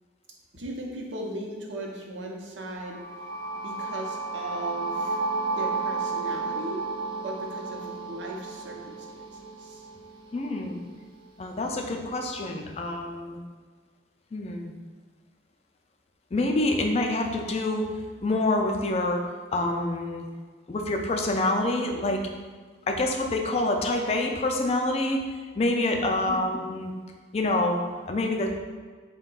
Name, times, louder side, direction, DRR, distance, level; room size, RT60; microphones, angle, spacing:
voice 1, 0.5-3.0 3.5-5.2 5.6-6.8 7.2-9.9 26.0-26.4, right 1 dB, 90° right, 0 dB, 0.7 m, -38 dB
sound 1, 2.8-10.7, right 3 dB, 30° right, 0.6 m, -32 dB
voice 2, 10.3-10.9 11.4-13.4 14.3-14.7 16.3-17.9 18.2-19.2 19.5-20.3 20.7-22.2 22.9-25.3 25.6-26.9 27.3-28.6, left 2 dB, 35° left, 3 dB, 0.3 m, -26 dB
4.4 x 2.2 x 3.8 m, 1.5 s
head